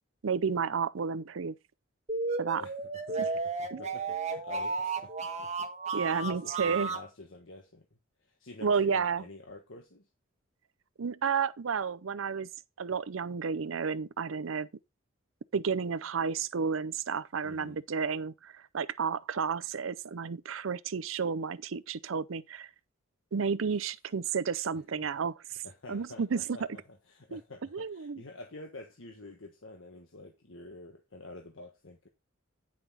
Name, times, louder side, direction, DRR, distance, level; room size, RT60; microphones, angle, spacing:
voice 1, 0.2-1.6 2.4-2.7 3.7-3.8 5.9-6.9 8.6-9.2 11.0-12.5 12.8-14.7 15.5-22.7 23.3-25.6 25.9-26.6 27.3-27.4 27.7-28.2, right 6 dB, 80° right, 0.6 m, -31 dB
sound 1, 2.1-7.1, right 4 dB, 35° right, 1.4 m, -33 dB
voice 2, 2.6-5.1 5.4-5.7 6.0-7.8 8.2-10.1 17.4-17.8 23.7-23.9 25.0-25.1 25.6-32.1, left 2 dB, 70° left, 1.4 m, -49 dB
9.5 x 5.9 x 4.1 m
head